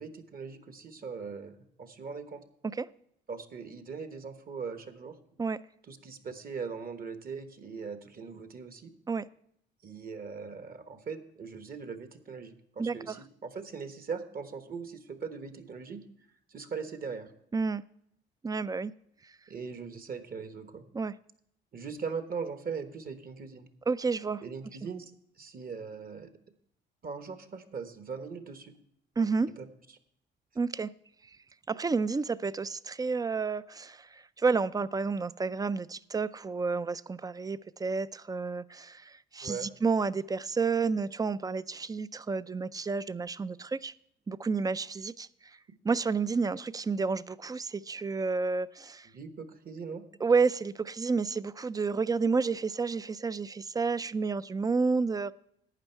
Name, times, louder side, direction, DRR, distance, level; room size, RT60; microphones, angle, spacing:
voice 1, 0.0-2.4 3.3-5.1 5.9-8.9 9.8-16.0 16.5-17.3 19.5-20.8 21.7-23.7 24.4-25.1 25.4-26.3 27.0-28.7 29.6-29.7 39.4-39.7 49.0-50.0, right 5 dB, 45° right, 1.3 m, -40 dB
voice 2, 12.8-13.2 17.5-17.8 18.4-18.9 20.9-21.1 23.9-24.4 29.2-29.5 30.6-30.9 31.7-43.9 44.3-45.3 45.8-49.1 50.2-55.3, right 4 dB, 20° right, 0.3 m, -30 dB
11.5 x 8.9 x 4.5 m
cardioid pair, 90°, 20 cm